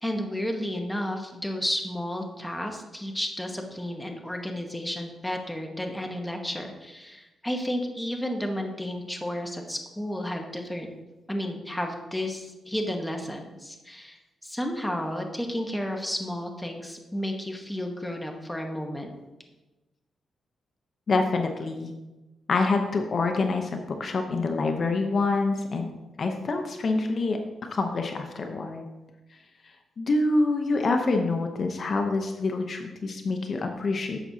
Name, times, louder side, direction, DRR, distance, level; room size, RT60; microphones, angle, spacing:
voice 1, 0.0-10.9 11.3-19.1, left 1 dB, 5° left, 2 dB, 1.1 m, -32 dB
voice 2, 21.1-21.9 22.5-25.9 26.2-27.4 27.7-28.9 30.0-34.2, left 3 dB, 45° left, 4 dB, 0.7 m, -26 dB
11.0 x 7.4 x 2.8 m, 1.1 s
cardioid pair, 120°, 0 cm